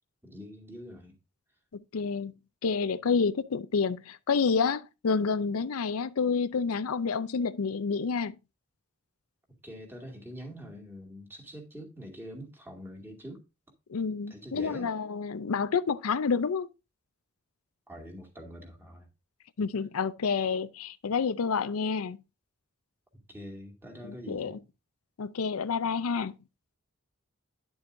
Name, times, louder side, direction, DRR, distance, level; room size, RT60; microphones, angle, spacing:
voice 1, 0.2-1.1 9.6-13.4 14.3-14.9 17.9-19.1 23.3-24.6, equal, 10° right, 2.2 m, -44 dB
voice 2, 1.9-2.3 2.6-8.3 13.9-16.7 19.6-22.2 24.0-24.5 25.2-26.3, left 5 dB, 90° left, 0.5 m, -29 dB
10.5 x 7.0 x 2.6 m
head